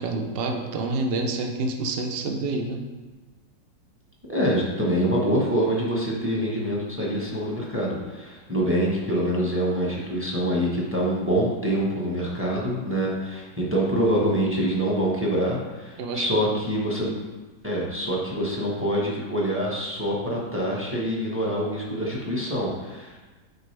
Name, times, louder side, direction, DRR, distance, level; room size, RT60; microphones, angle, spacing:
voice 1, 0.0-2.8 16.0-16.6, right 3 dB, 70° right, 3 dB, 0.5 m, -28 dB
voice 2, 4.3-17.1 17.6-23.2, equal, 10° right, -4 dB, 1.0 m, -25 dB
8.1 x 4.9 x 3.4 m, 1.3 s
omnidirectional pair, 2.0 m